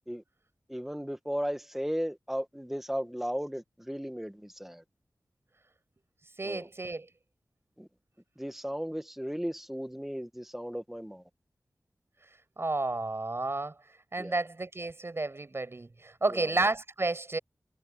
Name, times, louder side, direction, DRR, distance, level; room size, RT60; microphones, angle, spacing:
voice 1, 0.7-4.8 6.4-6.7 7.8-7.9 8.4-11.2 14.2-14.4 16.3-16.6, equal, 5° right, 1.7 m, -35 dB
voice 2, 6.4-7.1 12.6-13.7 14.1-17.4, right 2 dB, 50° right, 6.2 m, -31 dB
cardioid pair, 40°, 6 cm